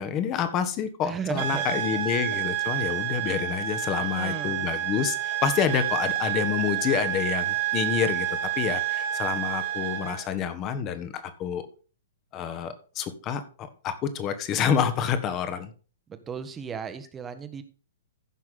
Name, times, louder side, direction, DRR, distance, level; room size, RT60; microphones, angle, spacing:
voice 1, 0.0-8.3 8.6-11.6 12.3-15.7, left 8 dB, 25° left, 10 dB, 1.3 m, -28 dB
voice 2, 1.0-1.8 4.0-4.7 16.1-17.6, right 6 dB, 15° right, 10 dB, 1.2 m, -35 dB
sound 1, 1.4-10.3, right 12 dB, 40° right, 1.3 m, -29 dB
15.0 x 6.1 x 3.7 m, 0.37 s
figure-of-eight pair, 110°, 0 cm